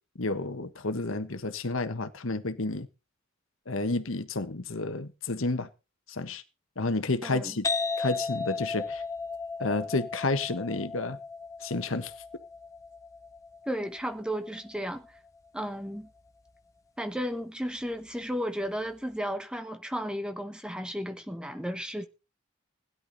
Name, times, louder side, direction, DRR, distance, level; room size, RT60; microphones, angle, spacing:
voice 1, 0.2-2.9 3.7-5.7 6.1-6.4 6.8-7.6 8.0-9.0 9.6-11.2 11.6-12.1, left 2 dB, 75° left, 1.3 m, -30 dB
voice 2, 7.2-7.5 13.7-15.2 15.5-16.1 17.0-22.1, equal, 5° right, 1.1 m, -34 dB
sound 1, 7.6-15.1, left 4 dB, 15° left, 0.8 m, -36 dB
17.0 x 11.0 x 4.1 m
head